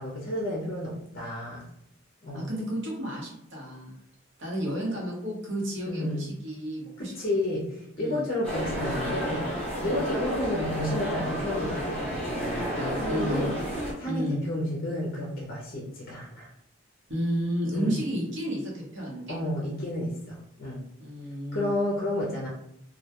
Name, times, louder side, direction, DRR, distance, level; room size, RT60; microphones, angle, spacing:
voice 1, 0.0-1.7 2.2-2.5 5.9-6.2 7.0-9.5 9.8-13.6 14.0-16.5 17.7-18.0 19.3-20.8 21.5-22.5, left 1 dB, 45° left, -3 dB, 0.5 m, -31 dB
voice 2, 2.3-4.0 4.4-7.1 8.0-8.2 9.8-10.1 13.0-13.5 14.0-14.4 17.1-19.4 21.0-21.7, equal, 65° right, -3 dB, 0.8 m, -32 dB
sound 1, 8.4-13.9, equal, 5° left, 0.7 m, -31 dB
2.1 x 2.1 x 2.8 m, 0.73 s
head